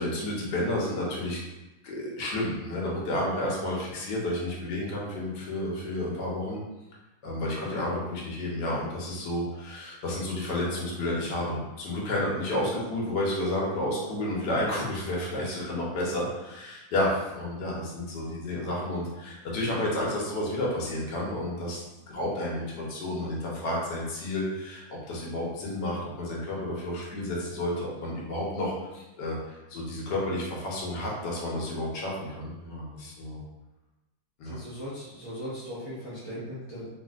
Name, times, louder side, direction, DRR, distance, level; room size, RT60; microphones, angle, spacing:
voice 1, 0.0-1.4 1.8-6.6 7.2-33.4 34.4-34.6, left 1 dB, 65° left, -4 dB, 1.2 m, -31 dB
voice 2, 34.4-36.9, equal, 35° right, -12 dB, 0.4 m, -38 dB
3.2 x 2.6 x 2.3 m, 1.1 s
omnidirectional pair, 2.3 m